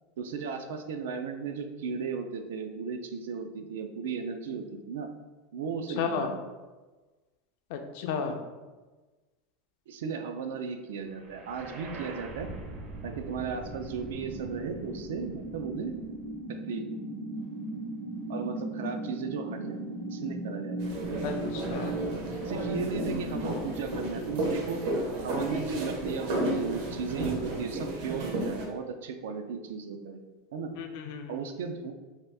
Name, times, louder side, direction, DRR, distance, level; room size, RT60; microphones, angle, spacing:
voice 1, 0.2-5.1 5.5-6.4 8.3-8.4 9.9-12.5 13.0-15.9 16.5-16.9 18.3-19.8 20.0-21.0 22.4-24.8 25.2-30.2 30.5-30.7 31.3-31.9, right 5 dB, 90° right, 6 dB, 0.3 m, -35 dB
voice 2, 6.0-6.3 7.7-8.4 21.2-22.0 30.7-31.4, left 6 dB, 60° left, 5 dB, 0.4 m, -33 dB
sound 1, 11.2-25.1, right 2 dB, 30° right, 0.5 m, -39 dB
sound 2, 20.8-28.7, right 1 dB, 65° right, 0.7 m, -33 dB
2.8 x 2.3 x 3.3 m, 1.2 s
supercardioid pair, 155°, 0 cm